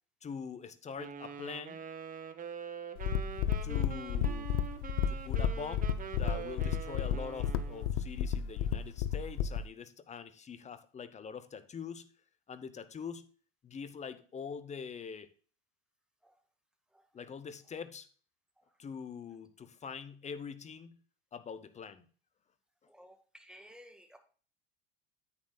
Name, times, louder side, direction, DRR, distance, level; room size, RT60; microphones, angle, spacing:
voice 1, 0.2-1.8 3.6-4.5 5.1-12.1 12.5-13.3 13.6-15.3 17.1-18.1 18.8-21.0 21.3-22.1, left 6 dB, 25° left, 0.9 m, -44 dB
Wind instrument woodwind instrument, 1.0-7.9, right 7 dB, 30° right, 1.1 m, -44 dB
sound 1, 3.0-9.7, left 8 dB, 55° left, 0.6 m, -32 dB
voice 2, 22.9-24.2, equal, 5° right, 1.7 m, -55 dB
9.6 x 8.5 x 2.4 m
hypercardioid pair, 85°, 30 cm